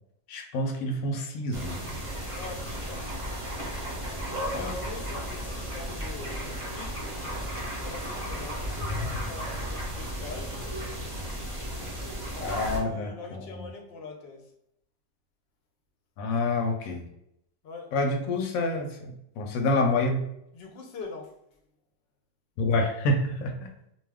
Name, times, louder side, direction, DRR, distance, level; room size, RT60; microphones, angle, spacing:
voice 1, 0.3-1.8 4.5-4.7 12.4-13.6 16.2-17.1 17.9-20.2 22.6-23.5, left 2 dB, 85° left, 3 dB, 1.0 m, -27 dB
sound 1, 1.5-12.8, equal, 30° right, 0.6 m, -34 dB
voice 2, 2.3-3.1 4.5-7.2 7.8-10.6 12.3-14.5 17.6-17.9 20.5-21.4, left 4 dB, 60° left, 2 dB, 0.7 m, -43 dB
2.5 x 2.3 x 3.4 m, 0.79 s
omnidirectional pair, 1.4 m